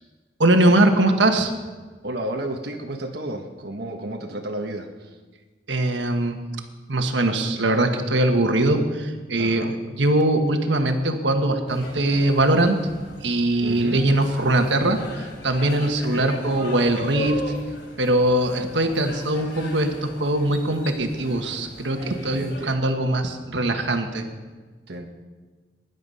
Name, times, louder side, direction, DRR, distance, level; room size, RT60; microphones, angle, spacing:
voice 1, 0.4-1.5 5.7-6.4 6.9-9.7 9.9-12.8 13.2-17.4 18.0-24.2, right 1 dB, 80° right, 5 dB, 1.5 m, -21 dB
voice 2, 2.0-5.2 9.4-9.7 13.6-14.0 15.8-16.3 22.3-22.8 24.9-25.1, right 1 dB, 65° right, 2 dB, 1.3 m, -32 dB
sound 1, 11.7-22.7, left 1 dB, 90° left, 5.9 m, -39 dB
20.0 x 11.0 x 5.5 m, 1.4 s
head